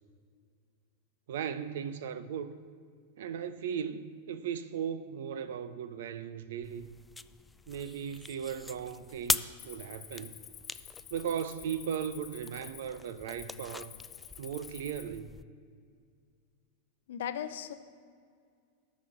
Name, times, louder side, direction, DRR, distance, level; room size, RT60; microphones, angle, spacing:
voice 1, 1.3-2.6 3.2-6.9 7.7-10.3 11.1-13.9 14.4-15.3, right 8 dB, 55° right, 0.6 m, -37 dB
sound 1, 6.6-15.5, left 3 dB, 10° left, 0.3 m, -41 dB
Cricket, 9.6-15.2, left 10 dB, 30° left, 1.3 m, -50 dB
voice 2, 17.1-17.7, left 9 dB, 60° left, 0.6 m, -36 dB
10.5 x 6.2 x 7.5 m
figure-of-eight pair, 90°, 0 cm